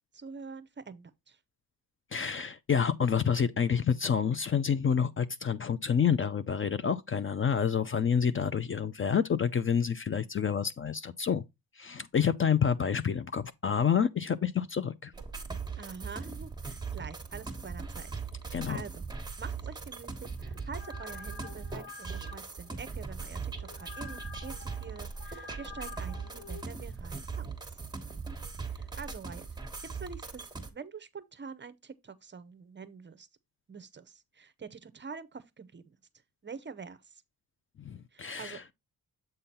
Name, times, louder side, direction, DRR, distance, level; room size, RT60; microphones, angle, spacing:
voice 1, 0.1-1.4 15.8-19.0 19.4-27.8 28.7-29.7 30.0-33.3 33.7-36.0 36.4-37.2 38.1-38.6, right 5 dB, 30° right, 0.6 m, -46 dB
voice 2, 2.1-11.4 11.8-15.1 18.5-18.8 37.8-38.6, left 7 dB, 35° left, 0.4 m, -28 dB
sound 1, 15.1-30.7, right 5 dB, 10° right, 1.3 m, -40 dB
sound 2, 20.4-26.6, left 5 dB, 85° left, 1.1 m, -48 dB
7.8 x 3.7 x 4.2 m
cardioid pair, 105°, 37 cm